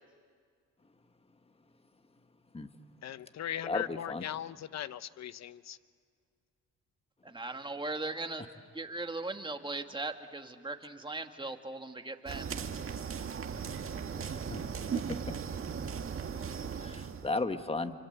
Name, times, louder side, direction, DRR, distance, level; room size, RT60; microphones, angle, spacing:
voice 1, 3.0-5.8, left 11 dB, 60° left, 15 dB, 0.9 m, -39 dB
voice 2, 3.6-4.3 14.5-14.7 14.9-15.2 16.8-17.9, left 3 dB, 20° left, 9 dB, 1.6 m, -34 dB
voice 3, 7.2-8.4 8.7-12.5, right 2 dB, 15° right, 6 dB, 1.9 m, -38 dB
sound 1, 12.3-17.3, right 6 dB, 45° right, 1.8 m, -37 dB
28.5 x 25.5 x 8.1 m, 2.1 s
cardioid pair, 90°, 30 cm